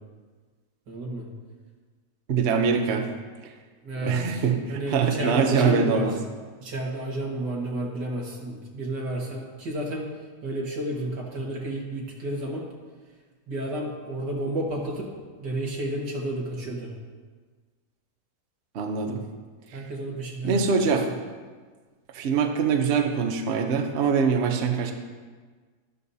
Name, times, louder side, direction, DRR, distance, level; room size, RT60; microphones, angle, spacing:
voice 1, 0.9-1.3 3.8-4.4 4.7-6.1 6.6-10.0 10.4-12.6 13.5-15.1 15.4-16.9 19.7-21.0, right 1 dB, 85° right, -2 dB, 2.4 m, -31 dB
voice 2, 2.3-3.0 3.4-3.5 4.0-6.1 18.7-19.2 19.7-19.8 20.4-21.1 22.1-24.9, right 5 dB, 50° right, 4 dB, 1.0 m, -23 dB
12.5 x 12.5 x 2.8 m, 1.5 s
omnidirectional pair, 1.8 m